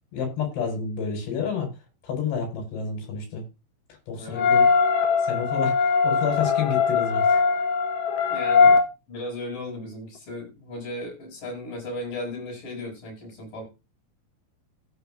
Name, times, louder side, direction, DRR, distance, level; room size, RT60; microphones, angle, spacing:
voice 1, 0.1-1.7 2.0-3.4 4.1-4.7 5.3-7.4, left 6 dB, 65° left, 6.3 m, -29 dB
voice 2, 4.1-4.5 8.3-8.8 9.1-13.6, left 1 dB, 45° left, 7.7 m, -36 dB
sound 1, 4.3-8.8, left 5 dB, 85° left, 1.6 m, -20 dB
16.5 x 7.5 x 2.5 m
omnidirectional pair, 5.3 m